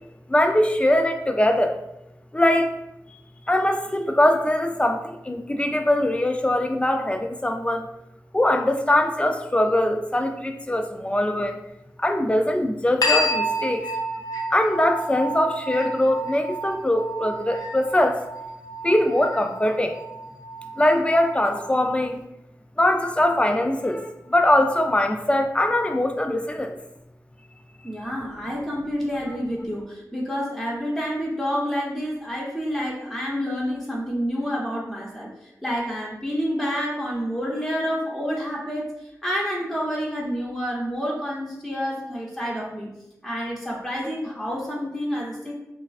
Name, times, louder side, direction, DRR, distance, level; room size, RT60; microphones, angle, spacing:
voice 1, 0.3-1.8 2.3-2.7 3.5-7.9 8.3-11.6 12.0-13.8 14.5-18.2 18.8-20.0 20.8-22.2 22.8-26.8, left 1 dB, 15° left, 5 dB, 0.3 m, -22 dB
sound 1, 13.0-22.0, equal, 75° left, 0.5 m, -30 dB
voice 2, 27.8-42.9 43.2-45.5, equal, ahead, -4 dB, 0.7 m, -28 dB
3.2 x 2.4 x 2.4 m, 0.88 s
cardioid pair, 50°, 7 cm